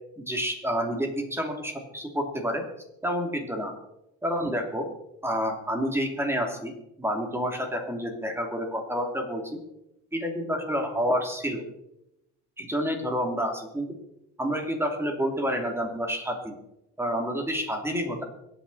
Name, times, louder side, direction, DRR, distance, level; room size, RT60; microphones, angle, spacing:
voice 1, 0.2-2.6 3.0-3.7 4.2-4.9 5.2-6.7 7.0-9.6 10.1-11.6 12.6-13.9 14.4-16.5 17.0-18.2, equal, 10° right, 3 dB, 3.0 m, -29 dB
23.0 x 9.3 x 4.2 m, 0.86 s
cardioid pair, 115°, 30 cm